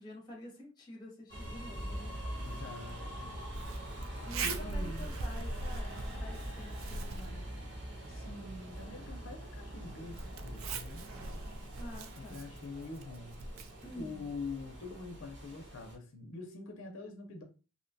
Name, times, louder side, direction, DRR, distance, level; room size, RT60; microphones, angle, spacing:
voice 1, 0.0-2.2 4.3-7.4 11.8-12.5 13.8-14.3, equal, 20° left, 0.6 m, -49 dB
sound 1, 1.3-16.0, equal, 60° right, 0.9 m, -44 dB
Zipper (clothing), 1.4-15.0, right 3 dB, 75° right, 0.4 m, -44 dB
voice 2, 2.4-3.3 4.4-5.1 8.1-11.1 12.2-13.4 13.9-17.4, left 3 dB, 75° left, 0.5 m, -45 dB
2.7 x 2.2 x 2.6 m
head